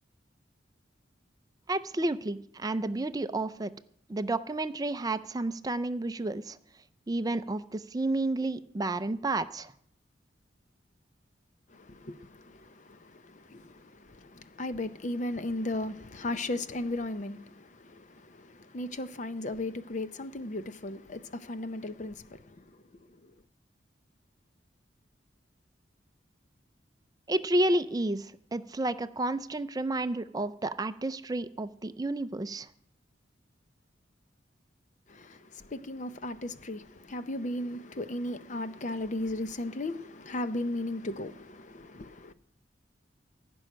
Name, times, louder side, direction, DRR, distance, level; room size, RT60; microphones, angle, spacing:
voice 1, 1.7-3.7 4.1-6.6 7.1-9.7 27.3-32.7, right 2 dB, 20° right, 0.5 m, -31 dB
voice 2, 11.7-22.8 23.1-23.2 35.1-42.3, left 1 dB, 40° left, 0.7 m, -36 dB
16.0 x 6.2 x 10.0 m
head